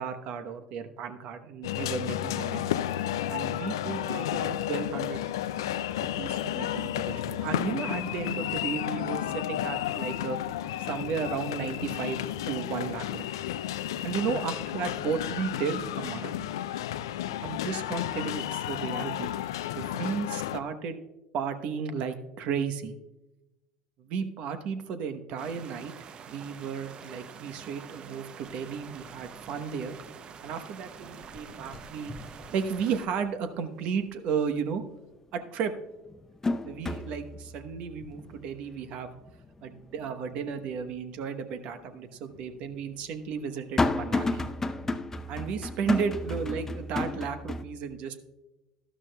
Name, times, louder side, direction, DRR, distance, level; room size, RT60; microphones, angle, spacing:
voice 1, 0.0-2.7 3.3-5.2 6.2-12.2 12.5-13.2 14.0-16.3 17.4-19.3 19.8-21.0 21.3-22.9 24.0-25.9 26.3-29.9 30.4-32.1 32.5-34.8 35.3-35.7 36.6-39.2 39.6-44.5 45.3-48.2, right 6 dB, 60° right, 9 dB, 1.0 m, -34 dB
sound 1, 1.6-20.6, left 12 dB, 85° left, 0.4 m, -32 dB
sound 2, 25.4-33.1, right 7 dB, 45° right, 0.6 m, -47 dB
sound 3, 29.0-29.5 29.9-30.7 31.0-33.2 33.6-33.7 35.2-35.3 35.8-40.9 41.3-41.4 42.3-47.7, left 2 dB, 20° left, 0.6 m, -33 dB
12.5 x 12.5 x 2.3 m, 1.0 s
hypercardioid pair, 80°, 2 cm